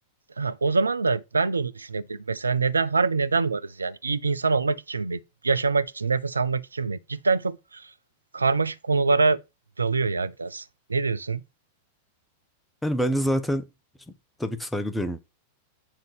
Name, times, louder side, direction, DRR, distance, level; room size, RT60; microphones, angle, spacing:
voice 1, 0.4-7.8 8.3-9.4 9.8-10.6 10.9-11.4, right 4 dB, 75° right, 0.5 m, -25 dB
voice 2, 12.8-13.7 14.4-15.2, equal, 5° left, 1.2 m, -26 dB
8.9 x 4.0 x 5.1 m
figure-of-eight pair, 90°, 0 cm